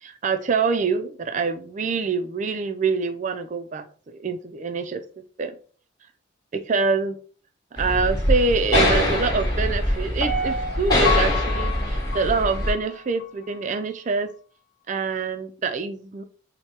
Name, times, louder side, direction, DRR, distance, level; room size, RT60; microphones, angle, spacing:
voice 1, 0.0-5.0 5.4-5.5 6.5-7.2 7.8-14.3 14.9-16.2, right 4 dB, 40° right, 9 dB, 0.3 m, -25 dB
sound 1, 7.8-12.7, left 1 dB, 20° left, 1.2 m, -23 dB
Piano, 10.2-13.3 13.7-13.8, left 3 dB, 45° left, 0.6 m, -30 dB
4.3 x 2.1 x 3.2 m, 0.41 s
head